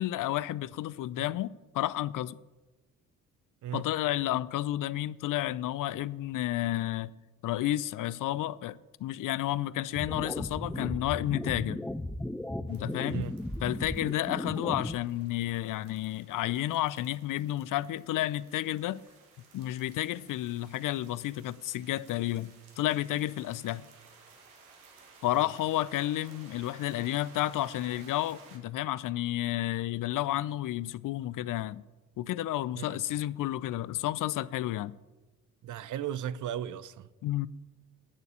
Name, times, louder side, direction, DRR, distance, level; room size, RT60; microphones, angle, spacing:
voice 1, 0.0-2.4 3.7-7.1 7.4-11.8 12.7-13.3 13.6-19.0 19.5-23.8 25.2-31.8 32.2-34.9 37.2-37.5, left 14 dB, 50° left, 0.5 m, -31 dB
sound 1, 9.9-14.9, left 1 dB, 5° left, 0.6 m, -36 dB
sound 2, 12.7-28.6, right 4 dB, 85° right, 1.7 m, -57 dB
voice 2, 35.6-37.1, right 10 dB, 45° right, 0.6 m, -36 dB
9.6 x 6.6 x 8.3 m
hypercardioid pair, 50°, 42 cm